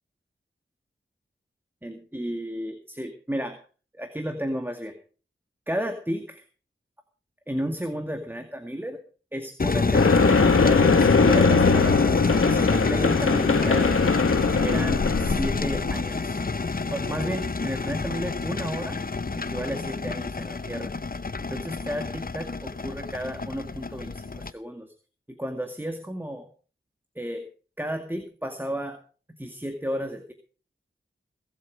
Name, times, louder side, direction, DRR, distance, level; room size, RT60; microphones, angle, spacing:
voice 1, 1.8-3.6 3.9-4.9 5.7-6.4 7.5-9.0 9.3-14.2 14.6-16.4 16.9-19.0 19.4-20.9 21.4-24.9 25.3-26.5 27.2-27.5 27.8-29.0 29.4-30.3, equal, 10° right, 5 dB, 2.1 m, -33 dB
sound 1, 9.6-24.5, left 4 dB, 45° left, 0.9 m, -27 dB
sound 2, 9.9-16.0, left 4 dB, 90° left, 1.4 m, -21 dB
21.5 x 8.3 x 5.2 m, 0.40 s
wide cardioid pair, 60°, 21 cm